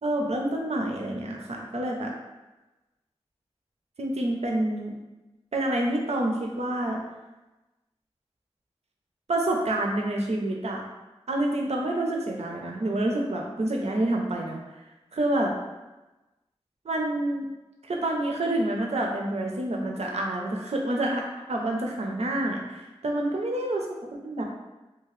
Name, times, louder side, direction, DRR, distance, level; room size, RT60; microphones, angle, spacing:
voice 1, 0.0-2.1 4.0-5.0 5.5-7.0 9.3-10.8 11.3-14.6 15.1-15.5 16.8-17.5 17.8-23.9 24.2-24.4, right 1 dB, 80° right, 0 dB, 0.5 m, -28 dB
2.8 x 2.3 x 3.1 m, 1.1 s
wide cardioid pair, 50°, 11 cm